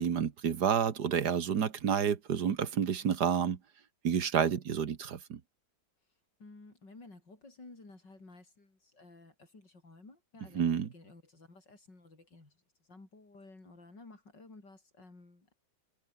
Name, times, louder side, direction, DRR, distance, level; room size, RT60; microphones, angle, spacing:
voice 1, 0.0-3.6 4.0-5.4 10.6-10.9, right 7 dB, 65° right, 2.0 m, -29 dB
voice 2, 6.4-15.5, left 3 dB, 80° left, 6.4 m, -54 dB
omnidirectional pair, 1.9 m